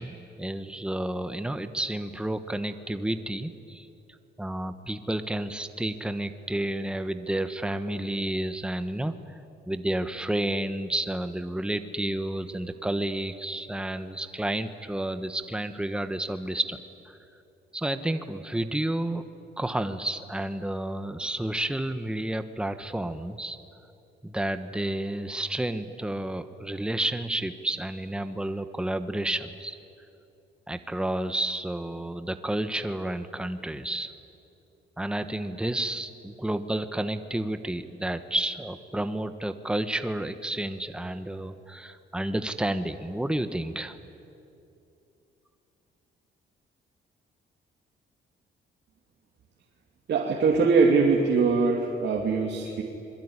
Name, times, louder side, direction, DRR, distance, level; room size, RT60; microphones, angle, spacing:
voice 1, 0.0-3.9 4.4-9.4 9.7-16.8 17.0-17.2 17.7-19.2 19.6-23.6 24.2-29.7 30.7-34.1 35.0-44.0, right 1 dB, 5° right, 9 dB, 1.3 m, -31 dB
voice 2, 50.1-52.8, right 4 dB, 60° right, 0 dB, 2.9 m, -22 dB
27.5 x 22.0 x 9.9 m, 2.7 s
cardioid pair, 90°, 20 cm